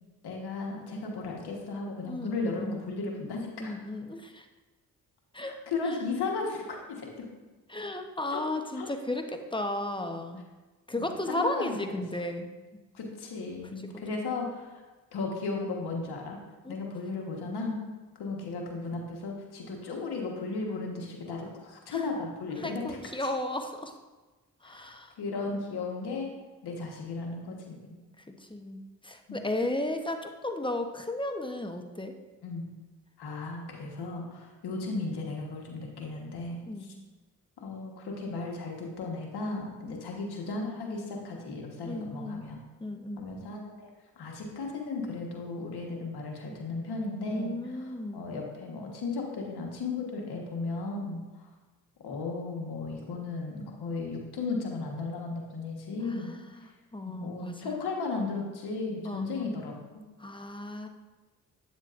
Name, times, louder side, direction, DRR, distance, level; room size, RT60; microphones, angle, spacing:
voice 1, 0.2-3.7 5.4-7.3 8.3-8.4 8.7-8.9 10.9-11.8 12.9-14.8 15.1-16.4 16.7-17.8 18.2-23.3 24.6-24.8 25.2-26.3 26.6-28.0 32.4-32.6 33.2-36.6 37.6-42.6 43.2-43.9 44.2-51.5 52.0-56.3 57.0-60.0, left 3 dB, 85° left, 0 dB, 1.4 m, -35 dB
voice 2, 2.0-2.9 3.6-4.5 5.3-5.6 5.9-6.0 7.7-10.5 10.9-12.5 13.7-14.0 16.6-16.8 21.9-22.0 22.6-24.0 24.6-25.1 28.3-32.2 36.7-36.9 39.9-40.0 41.9-42.5 42.8-43.3 47.3-48.2 56.0-57.8 59.0-59.5 60.2-60.9, left 1 dB, 15° left, 5 dB, 0.8 m, -35 dB
8.8 x 7.3 x 2.5 m, 1.2 s
cardioid pair, 50°, 38 cm